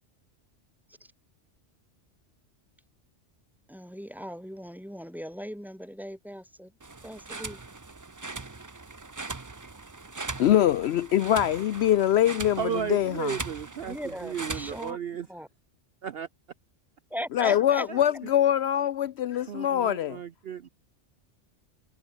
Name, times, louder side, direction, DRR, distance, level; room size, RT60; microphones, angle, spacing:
voice 1, 3.7-6.7 7.0-7.6 13.8-15.0 15.3-15.5 17.1-17.9, equal, ahead, 5.5 m, -38 dB
sound 1, 6.8-14.9, right 3 dB, 20° right, 0.6 m, -40 dB
voice 2, 10.4-12.6 12.9-13.4 17.3-20.2, left 11 dB, 70° left, 0.8 m, -23 dB
voice 3, 12.6-14.0 14.2-15.3 16.0-16.3 17.9-18.1 19.5-20.7, right 9 dB, 60° right, 0.9 m, -34 dB
omnidirectional pair, 1.2 m